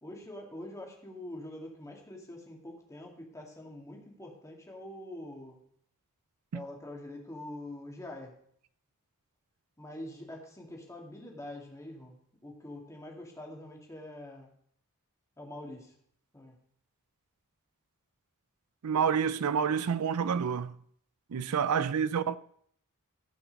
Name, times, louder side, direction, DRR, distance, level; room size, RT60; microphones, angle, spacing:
voice 1, 0.0-5.6 6.5-8.3 9.8-14.5 15.4-15.9 16.3-16.6 21.3-22.0, left 1 dB, 15° left, 2.3 m, -45 dB
voice 2, 18.8-20.7 21.3-22.4, right 7 dB, 80° right, 0.4 m, -28 dB
15.0 x 5.8 x 5.3 m
head